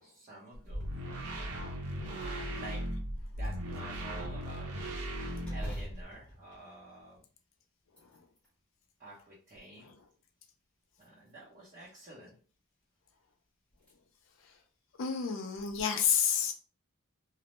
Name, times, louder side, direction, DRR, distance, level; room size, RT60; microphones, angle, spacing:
voice 1, 0.0-0.9 2.0-2.8 3.3-4.7 5.5-7.2 9.0-9.9 11.0-12.4, right 2 dB, 35° right, -7 dB, 0.6 m, -49 dB
sound 1, 0.5-6.0, equal, 85° right, 0.6 m, -37 dB
sound 2, 0.6-1.1 1.6-1.7 2.2-3.0 5.4-7.4 7.8-8.6 9.2-10.0 10.9-11.6 13.1-13.2 13.7-13.9 14.4-14.5 15.6-15.8, equal, 5° left, 0.8 m, -49 dB
voice 2, 15.0-16.5, left 7 dB, 55° left, 4 dB, 0.4 m, -29 dB
2.1 x 2.0 x 2.8 m, 0.39 s
head